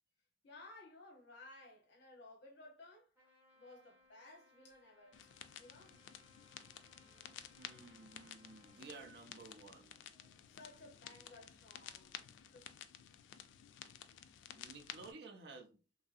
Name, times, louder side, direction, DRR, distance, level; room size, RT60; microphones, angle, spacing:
voice 1, 0.4-3.1 3.5-5.2 5.6-6.0 10.5-12.7, left 2 dB, 65° left, 0.8 m, -58 dB
Trumpet, 3.1-9.2, left 1 dB, 10° right, 1.3 m, -69 dB
Accelerating revving vroom, 3.7-14.2, equal, 35° right, 1.4 m, -75 dB
sound 1, 5.1-15.1, left 10 dB, 85° left, 0.3 m, -54 dB
voice 2, 7.5-9.9 14.5-15.8, right 3 dB, 60° right, 0.6 m, -54 dB
3.0 x 2.7 x 2.3 m
head